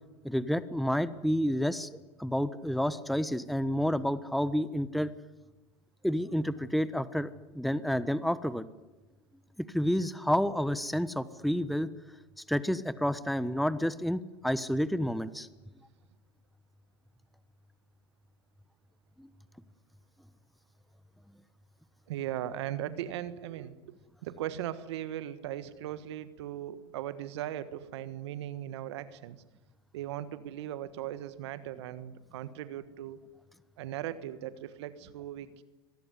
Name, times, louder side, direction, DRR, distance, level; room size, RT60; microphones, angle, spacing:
voice 1, 0.2-1.9 2.2-5.1 6.0-8.7 9.7-11.9 12.5-15.5 19.2-19.3, equal, ahead, 15 dB, 1.1 m, -29 dB
voice 2, 22.1-23.8 24.2-29.4 29.9-33.2 33.8-35.6, right 12 dB, 75° right, 13 dB, 1.5 m, -38 dB
25.5 x 19.5 x 9.9 m, 1.1 s
hypercardioid pair, 90°, 14 cm